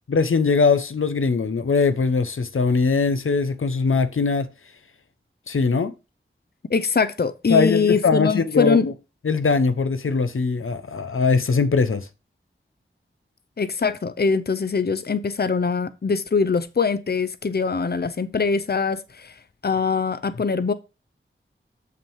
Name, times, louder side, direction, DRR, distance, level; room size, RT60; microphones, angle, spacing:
voice 1, 0.1-4.5 5.5-5.9 7.5-8.9 9.2-12.1, left 4 dB, 85° left, 0.7 m, -21 dB
voice 2, 6.7-8.9 13.6-19.3 19.6-20.7, left 5 dB, 50° left, 0.6 m, -22 dB
7.3 x 5.9 x 4.6 m
wide cardioid pair, 60°, 21 cm